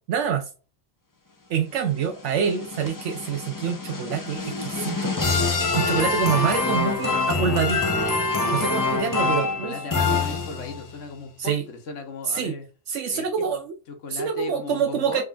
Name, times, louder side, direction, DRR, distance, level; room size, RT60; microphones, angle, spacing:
voice 1, 0.1-0.5 1.5-5.1 5.7-7.8 8.5-9.8 11.4-11.6 12.3-12.5 12.9-13.7 14.1-15.2, right 7 dB, 75° right, 0.9 m, -26 dB
sound 1, 2.0-10.9, left 4 dB, 30° left, 0.3 m, -25 dB
sound 2, 4.4-8.9, right 2 dB, 30° right, 0.7 m, -35 dB
voice 2, 9.6-12.7 13.1-13.3 13.9-15.2, left 3 dB, 85° left, 1.2 m, -37 dB
3.6 x 3.3 x 2.3 m
omnidirectional pair, 1.2 m